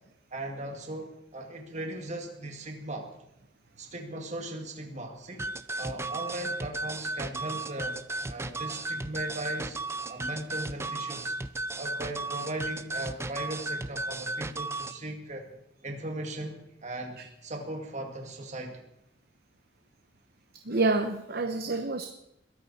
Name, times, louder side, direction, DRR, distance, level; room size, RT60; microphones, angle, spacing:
voice 1, 0.3-3.1 3.8-5.5 5.8-8.0 8.3-9.8 10.1-11.3 11.7-15.5 15.8-18.8, right 1 dB, 40° right, 2 dB, 2.2 m, -38 dB
sound 1, 5.4-15.0, right 2 dB, 15° right, 0.6 m, -35 dB
voice 2, 20.7-22.1, right 3 dB, 55° right, 6 dB, 1.0 m, -27 dB
21.5 x 14.0 x 4.3 m, 0.81 s
head